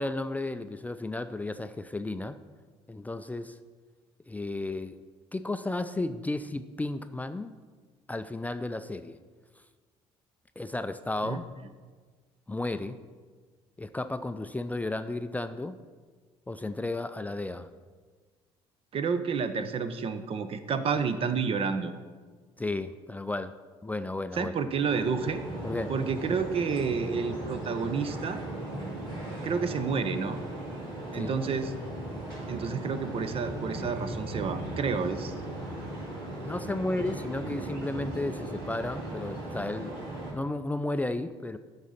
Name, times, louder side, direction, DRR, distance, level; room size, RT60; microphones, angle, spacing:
voice 1, 0.0-2.4 2.9-3.6 4.3-5.0 5.3-7.6 8.1-9.2 10.6-11.5 12.5-13.0 13.8-15.8 16.5-17.7 22.6-23.5 23.8-24.5 25.6-25.9 31.1-31.3 36.3-39.9 40.3-41.6, left 2 dB, 10° left, 10 dB, 0.4 m, -33 dB
voice 2, 18.9-21.9 24.4-25.4 25.9-28.4 29.4-30.4 31.1-31.7 32.5-35.3, right 5 dB, 45° right, 10 dB, 0.7 m, -30 dB
sound 1, 24.8-40.3, right 1 dB, 85° right, 2.6 m, -37 dB
11.0 x 4.0 x 5.5 m, 1.5 s
hypercardioid pair, 65°, 13 cm